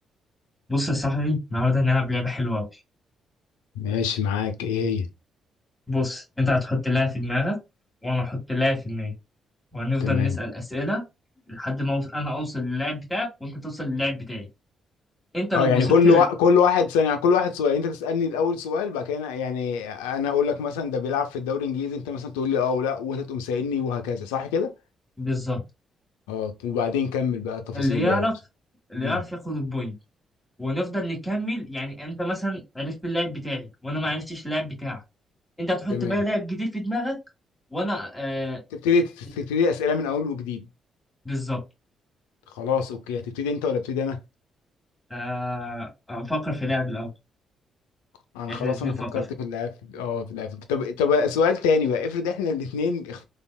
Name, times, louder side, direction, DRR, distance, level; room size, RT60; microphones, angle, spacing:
voice 1, 0.7-2.7 5.9-7.6 8.0-9.1 9.7-11.0 11.5-14.5 15.3-16.2 25.2-25.6 27.7-28.4 28.9-29.9 30.6-35.0 35.6-37.2 37.7-38.6 41.3-41.6 45.1-47.1 48.5-49.1, left 1 dB, 10° left, 1.8 m, -27 dB
voice 2, 3.8-5.1 10.0-10.4 15.5-24.7 26.3-28.3 29.0-29.2 35.9-36.2 38.7-40.7 42.5-44.2 48.3-53.2, left 5 dB, 85° left, 0.4 m, -24 dB
3.3 x 2.4 x 2.3 m
hypercardioid pair, 45°, 0 cm